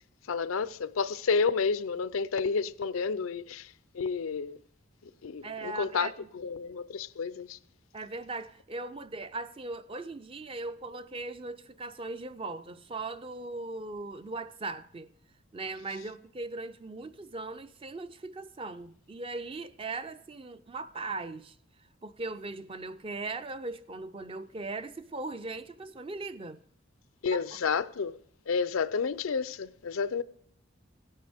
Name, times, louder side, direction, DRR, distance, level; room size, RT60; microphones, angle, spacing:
voice 1, 0.3-4.6 5.2-7.6 27.2-28.2 28.5-30.2, left 5 dB, 90° left, 0.5 m, -30 dB
voice 2, 5.4-6.3 7.9-15.1 15.5-21.6 22.0-26.6 27.3-27.4, right 3 dB, 25° right, 0.5 m, -39 dB
16.5 x 11.5 x 3.5 m
head